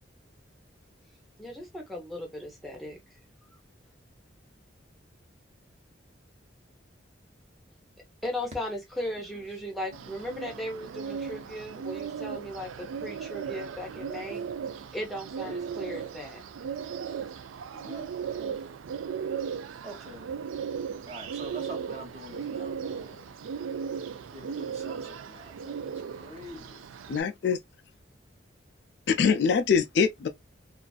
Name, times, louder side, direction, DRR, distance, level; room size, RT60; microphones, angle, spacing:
voice 1, 1.4-3.0 8.2-14.4 14.9-16.4, left 1 dB, ahead, 0.7 m, -37 dB
Bird, 9.9-27.2, right 7 dB, 90° right, 0.3 m, -37 dB
voice 2, 15.3-15.7 17.7-18.1 18.4-18.6 19.8-20.4 21.0-23.4 24.3-26.8, right 1 dB, 35° right, 0.9 m, -45 dB
voice 3, 27.1-27.6 29.1-30.3, left 6 dB, 60° left, 0.3 m, -23 dB
2.5 x 2.4 x 2.3 m
head